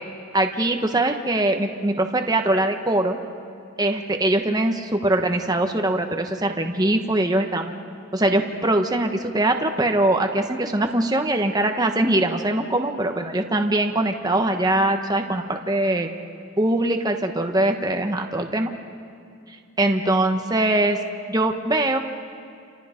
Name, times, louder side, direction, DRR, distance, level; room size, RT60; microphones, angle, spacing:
voice 1, 0.3-3.2 3.8-7.8 8.1-16.1 16.6-18.7 19.5-21.0 21.3-22.0, right 1 dB, 20° right, 4 dB, 1.1 m, -22 dB
29.5 x 27.0 x 5.2 m, 2.4 s
head